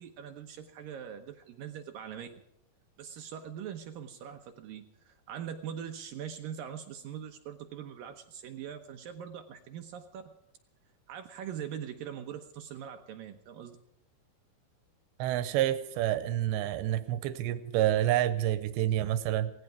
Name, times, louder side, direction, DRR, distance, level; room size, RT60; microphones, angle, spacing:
voice 1, 0.0-2.3 3.0-10.3 11.1-13.8, right 9 dB, 70° right, 6 dB, 2.3 m, -42 dB
voice 2, 15.2-19.5, right 12 dB, 90° right, 12 dB, 3.1 m, -28 dB
18.0 x 16.0 x 4.6 m, 0.83 s
omnidirectional pair, 5.0 m